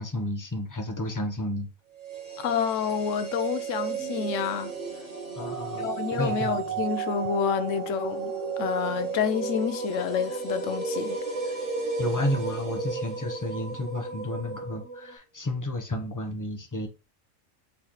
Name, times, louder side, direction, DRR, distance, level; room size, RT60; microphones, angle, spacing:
voice 1, 0.0-1.7 5.4-6.6 12.0-16.9, left 1 dB, 20° left, 0.6 m, -31 dB
sound 1, 1.9-14.0 14.3-14.4, right 6 dB, 35° right, 1.2 m, -35 dB
voice 2, 2.4-4.7 5.8-11.2, left 7 dB, 75° left, 0.9 m, -29 dB
sound 2, 3.8-15.2, right 2 dB, 65° right, 1.5 m, -36 dB
4.2 x 3.5 x 2.9 m
omnidirectional pair, 1.3 m